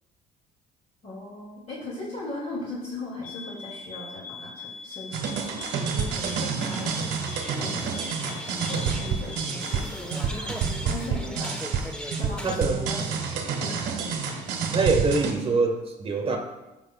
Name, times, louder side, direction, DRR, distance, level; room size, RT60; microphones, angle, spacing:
voice 1, 1.0-7.2 7.5-11.6 12.2-14.4, left 1 dB, 40° left, -6 dB, 2.3 m, -38 dB
sound 1, 3.2-10.0, left 6 dB, 60° left, 0.9 m, -42 dB
sound 2, 5.1-15.3, right 6 dB, 85° right, 1.3 m, -29 dB
sound 3, 5.8-12.6, equal, 5° left, 0.9 m, -39 dB
voice 2, 12.4-12.9 14.7-16.4, right 3 dB, 35° right, 3 dB, 1.2 m, -24 dB
13.5 x 6.1 x 2.3 m, 1.0 s
cardioid pair, 110°, 17 cm